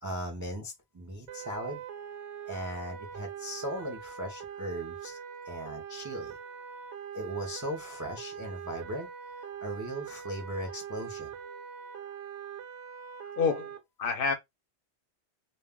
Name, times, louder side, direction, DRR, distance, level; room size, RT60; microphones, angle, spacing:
voice 1, 0.0-1.8 2.5-5.2 5.5-6.4 7.1-9.1 9.4-11.3, equal, 30° right, 0.3 m, -38 dB
sound 1, 1.3-13.8, right 8 dB, 75° right, 0.8 m, -42 dB
voice 2, 13.4-14.3, left 5 dB, 60° left, 0.7 m, -28 dB
2.2 x 2.1 x 3.4 m
omnidirectional pair, 1.2 m